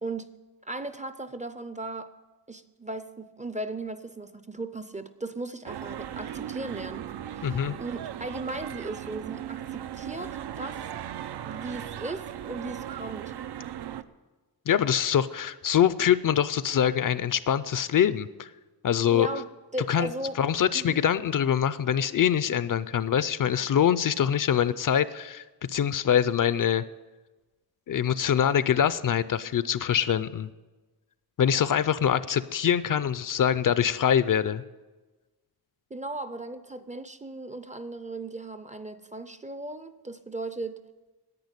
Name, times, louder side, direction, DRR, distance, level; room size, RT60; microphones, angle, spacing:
voice 1, 0.6-2.1 2.5-7.0 7.3-10.8 11.4-13.3 19.1-19.5 19.7-20.4 20.7-21.0 35.9-40.8, right 2 dB, 20° right, 12 dB, 0.4 m, -37 dB
sound 1, 5.6-14.0, right 10 dB, 85° right, 0.6 m, -37 dB
voice 2, 7.4-7.8 14.7-18.5 18.8-19.3 19.9-20.1 20.4-25.4 25.7-26.8 27.9-30.5 31.4-34.6, left 9 dB, 55° left, 16 dB, 0.5 m, -24 dB
10.5 x 8.7 x 9.7 m, 1.2 s
wide cardioid pair, 175°, 39 cm